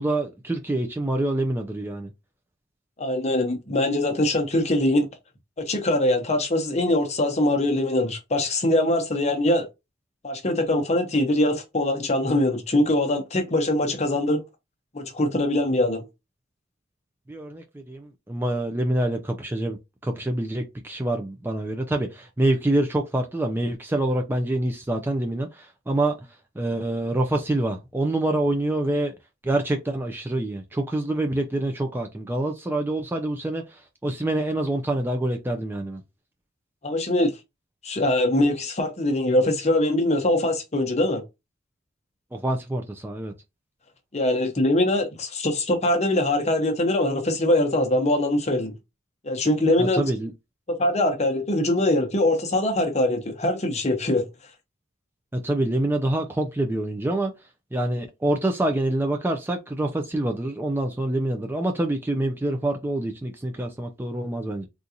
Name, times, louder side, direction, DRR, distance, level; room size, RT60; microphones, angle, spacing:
voice 1, 0.0-2.1 17.3-19.8 20.0-26.1 26.6-29.1 29.4-33.6 34.0-36.0 42.3-43.3 49.8-50.3 55.3-57.3 57.7-64.7, right 1 dB, 10° right, 0.4 m, -26 dB
voice 2, 3.0-5.1 5.6-9.7 10.2-14.4 14.9-16.0 36.8-37.3 37.8-41.2 44.1-48.8 49.2-50.0 50.7-54.2, left 1 dB, 35° left, 0.8 m, -22 dB
3.8 x 2.4 x 2.8 m
head